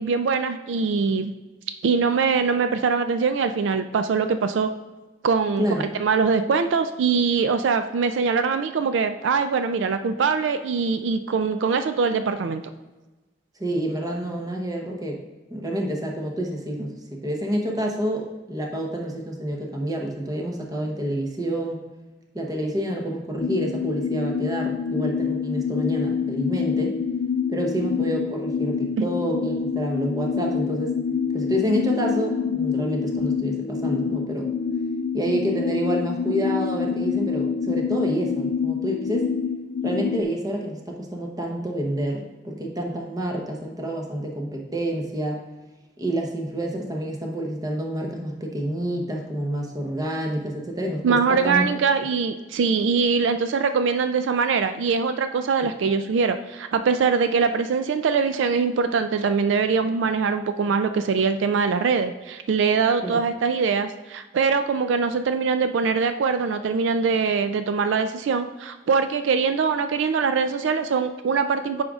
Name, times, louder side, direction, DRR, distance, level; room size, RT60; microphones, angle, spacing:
voice 1, 0.0-1.3 1.8-4.7 5.2-5.7 6.0-12.6 29.0-29.1 51.0-71.8, right 5 dB, 80° right, 9 dB, 0.3 m, -22 dB
voice 2, 5.6-5.9 13.6-15.2 15.5-21.8 22.3-27.0 27.5-30.9 31.3-34.5 35.1-39.3 39.8-45.4 46.0-51.6 63.0-63.2, right 1 dB, 20° right, 1 dB, 0.9 m, -28 dB
sound 1, 23.4-40.2, left 6 dB, 45° left, 0.3 m, -26 dB
9.0 x 4.9 x 2.4 m, 1.1 s
head